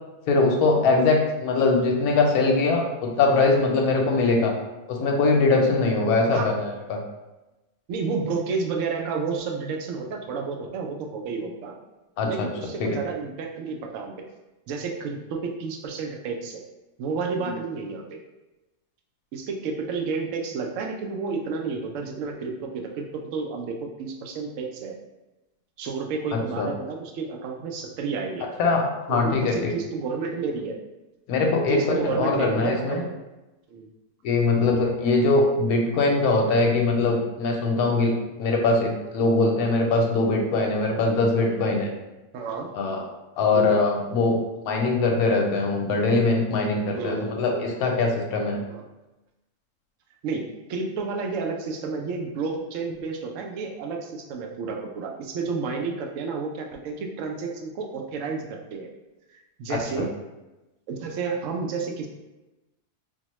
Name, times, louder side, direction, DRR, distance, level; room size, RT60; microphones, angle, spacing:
voice 1, 0.3-4.5 4.9-7.0 12.2-12.5 12.8-13.0 17.4-17.5 26.3-26.7 28.6-29.6 31.3-33.0 34.2-41.9 42.7-43.0 43.4-44.4 44.6-48.6 59.7-59.8, left 3 dB, 70° left, 1 dB, 1.1 m, -22 dB
voice 2, 7.9-11.7 12.2-14.1 14.7-16.6 17.0-18.2 19.3-23.1 23.3-25.0 25.8-28.5 29.1-30.8 31.7-33.1 33.7-33.9 34.6-34.8 42.3-42.7 43.5-43.8 46.9-47.3 48.7-48.8 50.2-58.9 59.6-60.1 60.9-62.1, right 4 dB, 70° right, 1 dB, 0.8 m, -31 dB
4.0 x 2.2 x 3.0 m, 1.0 s
omnidirectional pair, 1.7 m